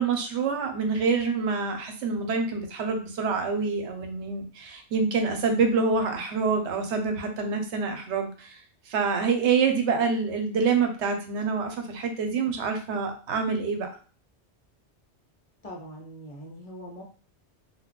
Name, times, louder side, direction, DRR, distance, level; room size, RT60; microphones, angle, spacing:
voice 1, 0.0-8.6 8.9-13.9, right 5 dB, 90° right, 5 dB, 0.9 m, -26 dB
voice 2, 15.6-17.0, equal, 40° left, 0 dB, 0.7 m, -42 dB
2.3 x 2.3 x 3.5 m, 0.38 s
omnidirectional pair, 1.1 m